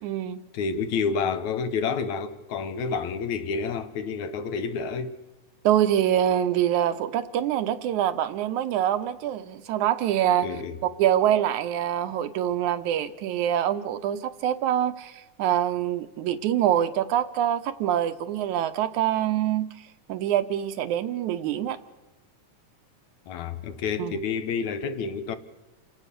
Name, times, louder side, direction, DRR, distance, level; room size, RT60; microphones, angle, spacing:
voice 1, 0.0-0.4 5.6-10.5 11.0-19.7 20.1-21.8 24.0-24.2, right 11 dB, 75° right, 2.2 m, -25 dB
voice 2, 0.5-5.2 10.4-10.8 23.3-25.4, left 5 dB, 70° left, 2.4 m, -29 dB
28.5 x 17.0 x 6.7 m
omnidirectional pair, 3.5 m